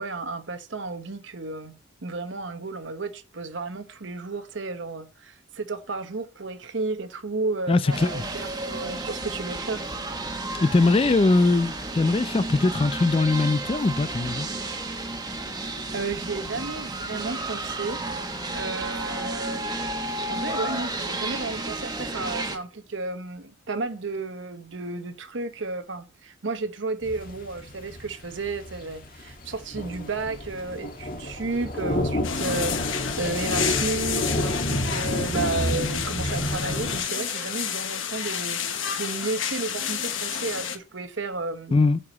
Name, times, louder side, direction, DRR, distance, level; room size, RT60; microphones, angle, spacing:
voice 1, 0.0-9.9 15.9-18.0 18.5-19.7 20.3-41.8, right 3 dB, 65° right, 1.0 m, -33 dB
voice 2, 7.7-8.2 10.6-14.5 41.7-42.0, left 3 dB, 25° left, 0.3 m, -21 dB
sound 1, 7.9-22.6, right 2 dB, 20° right, 1.2 m, -32 dB
sound 2, 27.0-37.0, left 1 dB, 45° left, 1.7 m, -30 dB
sound 3, 32.2-40.8, left 8 dB, 75° left, 1.2 m, -30 dB
8.6 x 4.9 x 7.1 m
head